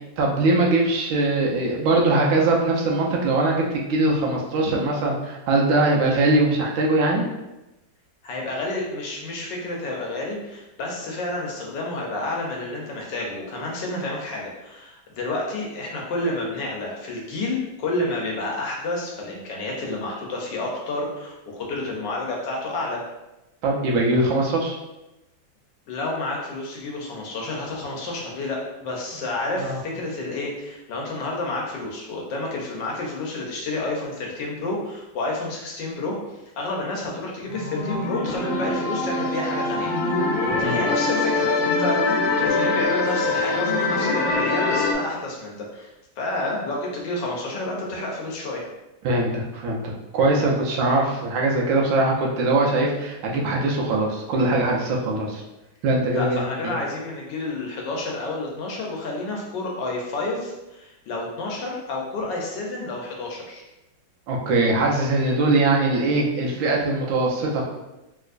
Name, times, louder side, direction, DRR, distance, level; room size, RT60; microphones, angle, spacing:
voice 1, 0.2-7.2 23.6-24.8 29.6-29.8 40.5-40.8 49.0-55.4 55.8-56.7 64.3-67.6, right 2 dB, 80° right, -2 dB, 1.4 m, -21 dB
voice 2, 8.2-23.0 25.9-36.2 36.6-48.6 56.1-63.6, left 2 dB, 70° left, -2 dB, 1.2 m, -30 dB
sound 1, 37.5-44.9, left 3 dB, 85° left, 1.5 m, -23 dB
3.4 x 2.9 x 2.4 m, 0.97 s
omnidirectional pair, 2.2 m